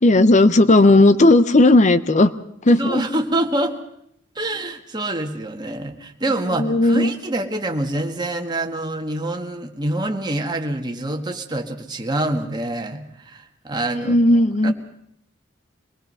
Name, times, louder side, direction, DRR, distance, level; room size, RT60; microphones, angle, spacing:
voice 1, 0.0-2.3 2.6-3.0 6.5-7.1 14.0-14.7, left 2 dB, 40° left, 14 dB, 0.8 m, -14 dB
voice 2, 2.8-3.8 4.4-14.2 14.6-14.7, right 1 dB, 25° right, 2 dB, 1.8 m, -26 dB
25.0 x 20.0 x 5.6 m, 0.72 s
head